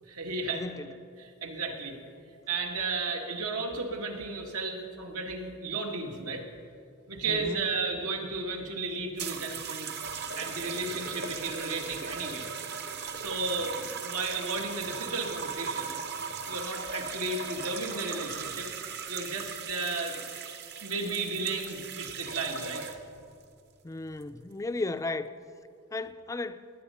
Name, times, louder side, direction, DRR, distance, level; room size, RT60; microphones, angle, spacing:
voice 1, 0.0-0.9 1.2-1.9 2.5-6.4 7.1-9.9 10.4-12.5 13.1-15.9 16.5-18.7 19.1-20.2 20.8-22.8, right 3 dB, 85° right, 1.8 m, -34 dB
voice 2, 0.5-0.9 7.3-7.7 23.8-25.3 25.9-26.7, left 2 dB, 15° left, 0.3 m, -35 dB
sound 1, 9.2-23.2 24.1-24.4, right 6 dB, 50° right, 0.9 m, -38 dB
19.0 x 9.5 x 5.7 m
head